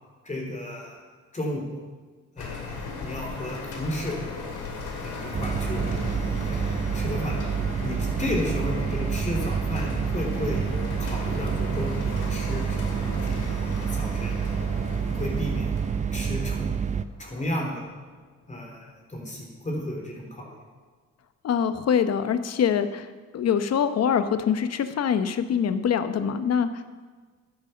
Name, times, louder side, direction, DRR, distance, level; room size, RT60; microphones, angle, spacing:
voice 1, 0.2-1.0 1.3-1.8 2.3-4.2 5.0-5.9 6.4-7.4 7.8-14.4 15.1-15.8 16.1-16.7 17.2-17.9 18.5-20.6, left 1 dB, 25° left, 0 dB, 3.4 m, -33 dB
sound 1, 2.4-17.8, left 4 dB, 80° left, 2.7 m, -37 dB
sound 2, 5.3-17.1, right 7 dB, 25° right, 0.5 m, -28 dB
voice 2, 21.4-23.1 23.3-26.8, left 7 dB, 55° left, 11 dB, 0.9 m, -24 dB
10.5 x 9.2 x 6.8 m, 1.4 s
cardioid pair, 90°, 30 cm